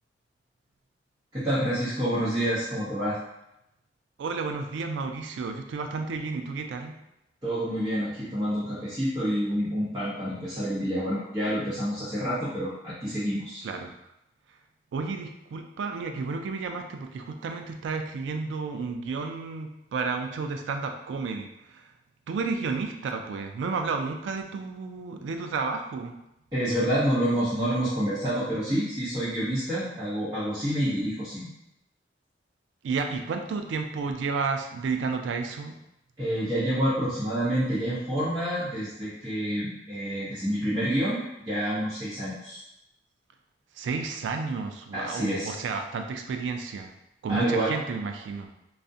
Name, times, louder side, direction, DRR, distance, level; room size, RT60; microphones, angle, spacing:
voice 1, 1.3-3.2 7.4-13.6 26.5-31.5 36.2-42.6 44.9-45.5 47.3-47.7, equal, 25° right, -12 dB, 0.7 m, -28 dB
voice 2, 4.2-7.0 13.6-13.9 14.9-21.8 22.3-26.1 32.8-35.8 43.8-46.9 47.2-48.5, right 4 dB, 80° right, 5 dB, 0.3 m, -31 dB
2.3 x 2.0 x 2.6 m, 0.86 s
head